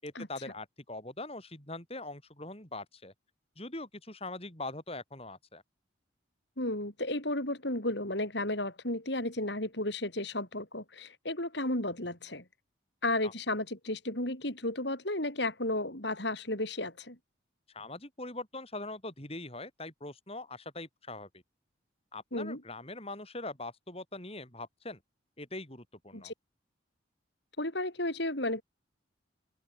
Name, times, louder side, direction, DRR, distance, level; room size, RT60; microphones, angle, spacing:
voice 1, 0.0-3.1 3.6-5.6 13.2-13.3 17.7-21.4 22.1-25.0 25.4-26.3, left 2 dB, 30° left, 7.8 m, -42 dB
voice 2, 6.6-12.4 13.0-17.2 22.3-22.6 26.1-26.3 27.6-28.6, left 1 dB, 55° left, 5.6 m, -33 dB
open air
head